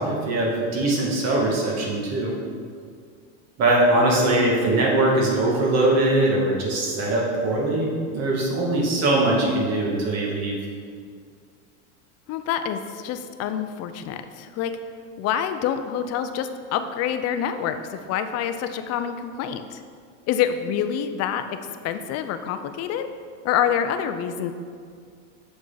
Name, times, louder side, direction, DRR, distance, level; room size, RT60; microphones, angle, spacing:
voice 1, 0.0-2.3 3.6-10.5, right 2 dB, 45° right, -2 dB, 2.0 m, -21 dB
voice 2, 12.3-14.7 15.2-19.8 20.3-21.6 21.8-23.1 23.4-24.5, left 9 dB, 45° left, 9 dB, 0.6 m, -27 dB
7.3 x 6.2 x 4.0 m, 2.2 s
supercardioid pair, 130°, 37 cm